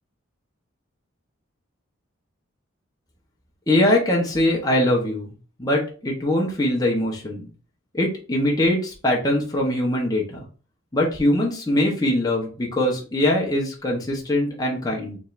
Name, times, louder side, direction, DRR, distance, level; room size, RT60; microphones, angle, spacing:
voice 1, 3.7-5.3 5.6-7.5 7.9-10.4 10.9-15.2, left 1 dB, 20° left, -2 dB, 1.0 m, -22 dB
5.3 x 3.3 x 2.6 m, 0.37 s
head